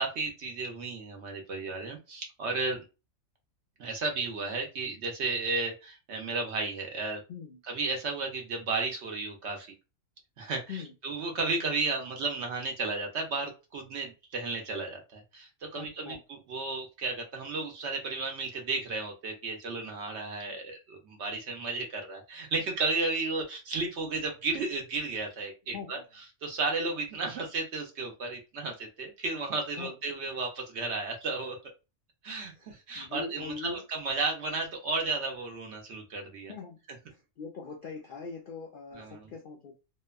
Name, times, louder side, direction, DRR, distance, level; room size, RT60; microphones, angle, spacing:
voice 1, 0.0-2.8 3.8-7.2 7.7-9.7 10.4-26.0 26.4-31.6 32.2-36.5 39.0-39.3, right 3 dB, 60° right, 2 dB, 0.8 m, -33 dB
voice 2, 15.8-16.2 25.7-26.0 29.8-29.9 32.5-33.8 36.5-36.8 37.0-39.7, left 4 dB, 70° left, 1 dB, 0.5 m, -41 dB
2.8 x 2.1 x 2.3 m, 0.29 s
omnidirectional pair, 1.4 m